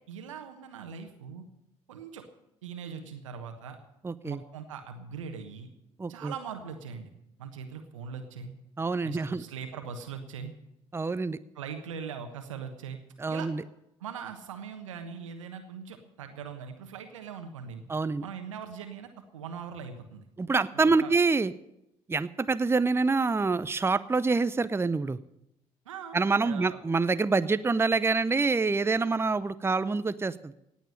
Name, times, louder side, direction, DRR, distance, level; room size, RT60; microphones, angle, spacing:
voice 1, 0.1-1.4 1.9-2.2 2.6-3.8 4.2-5.7 6.1-7.1 7.4-8.5 9.0-10.5 11.5-13.0 13.3-13.5 14.0-17.8 18.2-20.3 20.7-21.1 25.8-26.2 26.4-26.8, right 6 dB, 80° right, 7 dB, 1.3 m, -41 dB
voice 2, 4.0-4.4 6.0-6.3 8.8-9.4 10.9-11.4 13.2-13.6 17.9-18.2 20.4-21.5 22.1-25.2 26.1-30.5, right 4 dB, 15° right, 15 dB, 0.7 m, -26 dB
18.0 x 7.2 x 9.8 m, 0.83 s
figure-of-eight pair, 50°, 16 cm